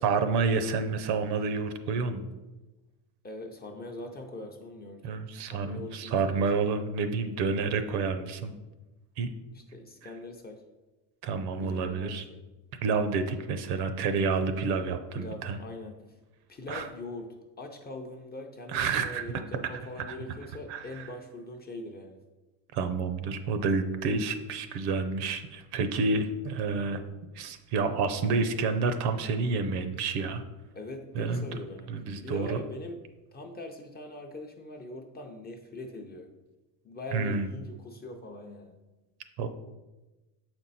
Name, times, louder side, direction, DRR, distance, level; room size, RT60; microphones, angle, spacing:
voice 1, 0.0-2.3 5.0-8.5 9.2-9.3 11.2-12.2 12.8-15.6 16.7-16.8 18.7-19.2 20.1-20.2 20.7-20.8 22.7-27.0 27.3-30.4 31.1-31.5 31.9-32.6 37.1-37.5 39.4-39.5, right 4 dB, 55° right, 9 dB, 0.7 m, -29 dB
voice 2, 3.2-5.1 5.4-6.8 9.5-10.6 11.6-12.4 15.1-16.2 16.5-22.2 30.7-33.1 33.3-36.3 36.8-38.8, left 2 dB, 20° left, 2 dB, 0.5 m, -42 dB
6.9 x 4.5 x 4.1 m, 1.1 s
cardioid pair, 125°, 48 cm